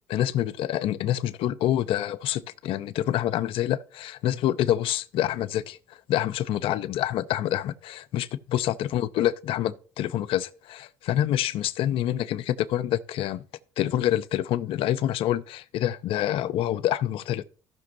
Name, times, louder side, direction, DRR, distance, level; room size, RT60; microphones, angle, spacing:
voice 1, 0.1-5.8 6.1-13.4 13.8-17.4, left 12 dB, 70° left, 0.6 m, -27 dB
16.0 x 6.1 x 2.6 m
supercardioid pair, 70°, 9 cm